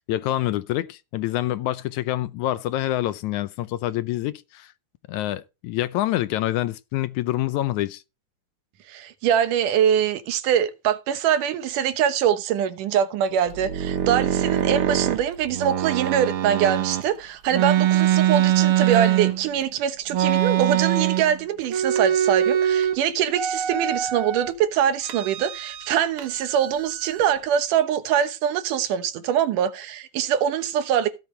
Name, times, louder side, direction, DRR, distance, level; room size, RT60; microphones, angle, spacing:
voice 1, 0.1-4.7 5.1-8.0, left 14 dB, 75° left, 2.0 m, -26 dB
voice 2, 8.9-31.1, right 9 dB, 80° right, 2.6 m, -23 dB
sound 1, 13.5-17.0 17.5-19.6 20.1-21.4 21.6-23.0 23.3-24.5 25.0-25.9 26.2-27.4, right 11 dB, 60° right, 1.6 m, -23 dB
16.5 x 7.6 x 3.3 m
omnidirectional pair, 3.7 m